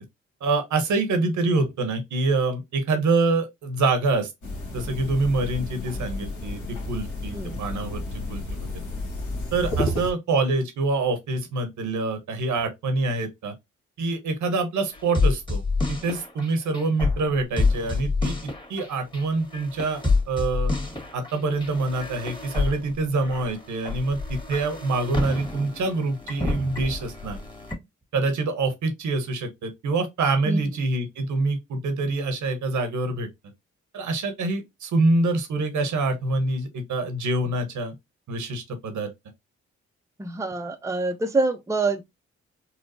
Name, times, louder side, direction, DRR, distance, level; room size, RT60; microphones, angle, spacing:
voice 1, 0.4-4.3 4.7-6.6 6.9-8.0 8.3-8.7 9.5-13.5 14.0-15.6 15.9-20.7 21.1-27.4 28.1-33.3 33.9-37.9 38.3-39.1, right 3 dB, 70° right, 1.0 m, -25 dB
sound 1, 4.4-10.1, left 1 dB, 70° left, 1.4 m, -31 dB
sound 2, 14.9-27.8, left 3 dB, 15° left, 1.7 m, -28 dB
voice 2, 40.2-42.1, right 3 dB, 10° right, 0.7 m, -26 dB
4.1 x 2.2 x 2.6 m
supercardioid pair, 45°, 30 cm